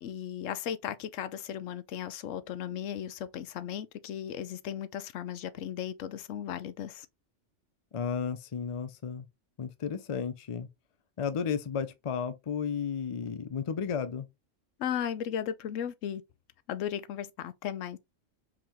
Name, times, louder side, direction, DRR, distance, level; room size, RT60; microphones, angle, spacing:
voice 1, 0.0-7.1 14.8-16.2 16.7-18.1, left 9 dB, 85° left, 1.0 m, -36 dB
voice 2, 7.9-9.3 9.6-10.7 11.2-14.3, left 6 dB, 40° left, 0.4 m, -33 dB
4.9 x 3.6 x 3.0 m
omnidirectional pair, 1.3 m